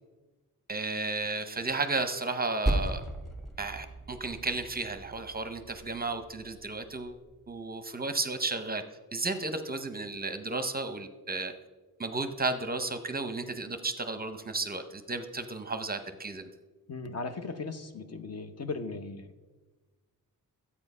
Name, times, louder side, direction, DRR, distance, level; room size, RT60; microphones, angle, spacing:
voice 1, 0.7-3.0 3.6-7.2 7.5-8.8 9.1-11.5 12.0-16.5, right 3 dB, 25° right, 8 dB, 0.7 m, -33 dB
Percussion, 2.7-7.5, right 1 dB, ahead, 1.4 m, -36 dB
voice 2, 16.9-19.4, left 3 dB, 45° left, 9 dB, 0.8 m, -37 dB
13.0 x 8.4 x 5.4 m, 1.2 s
wide cardioid pair, 160°, 37 cm